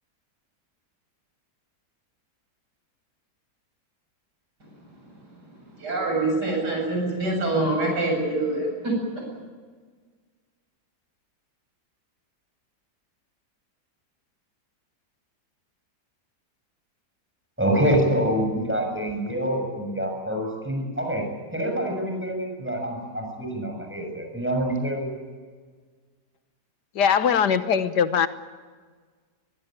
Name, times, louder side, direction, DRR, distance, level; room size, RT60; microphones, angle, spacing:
voice 1, 5.8-9.2, right 2 dB, 75° right, 0 dB, 8.7 m, -25 dB
voice 2, 17.6-21.3 21.5-25.1, right 1 dB, 5° right, 2 dB, 6.5 m, -26 dB
voice 3, 26.9-28.3, left 7 dB, 80° left, 11 dB, 1.7 m, -21 dB
23.5 x 22.0 x 9.1 m, 1.5 s
omnidirectional pair, 1.8 m